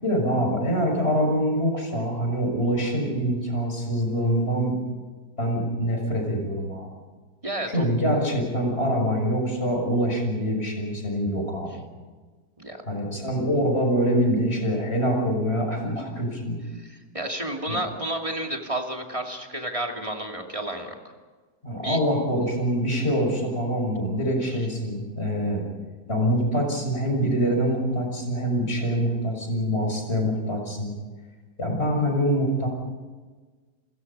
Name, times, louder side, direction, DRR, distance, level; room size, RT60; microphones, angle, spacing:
voice 1, 0.0-4.8 5.4-6.9 7.7-11.8 12.9-16.6 17.7-17.8 21.6-25.6 26.1-30.9 31.6-32.7, equal, 35° left, 2 dB, 6.4 m, -25 dB
voice 2, 7.4-7.9 12.6-12.8 16.8-20.9 21.8-22.0, right 1 dB, 20° right, 2 dB, 2.5 m, -31 dB
30.0 x 21.5 x 5.6 m, 1.4 s
omnidirectional pair, 1.8 m